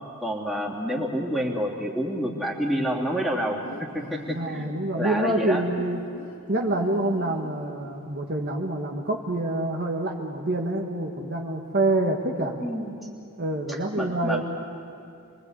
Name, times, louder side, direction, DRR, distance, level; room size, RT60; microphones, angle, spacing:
voice 1, 0.2-3.7 3.9-5.9 12.6-12.9 13.7-14.4, equal, ahead, -4 dB, 3.0 m, -28 dB
sound 1, 3.1-5.0 5.6-8.0 8.3-8.4, equal, 70° left, 3.7 m, -45 dB
voice 2, 4.3-6.0 6.5-12.6 13.4-14.4, right 1 dB, 45° right, 1 dB, 1.7 m, -26 dB
27.5 x 23.0 x 8.2 m, 2.5 s
head